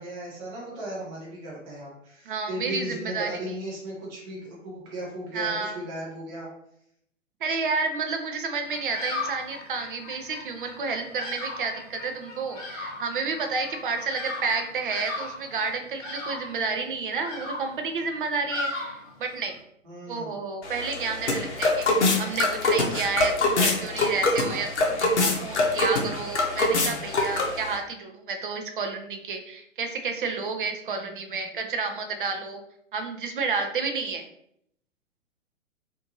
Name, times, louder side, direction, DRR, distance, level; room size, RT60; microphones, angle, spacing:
voice 1, 0.0-6.5 19.8-20.3, right 1 dB, 20° right, -5 dB, 0.9 m, -36 dB
voice 2, 2.3-3.3 5.3-5.8 7.4-19.5 20.1-32.6 32.9-34.3, right 4 dB, 40° right, 5 dB, 0.5 m, -30 dB
Bird vocalization bird call bird song, 8.6-19.6, left 2 dB, 30° left, 1.0 m, -37 dB
sound 1, 20.6-27.8, left 2 dB, 55° left, 0.7 m, -25 dB
2.6 x 2.5 x 2.9 m, 0.71 s
figure-of-eight pair, 115°, 40 cm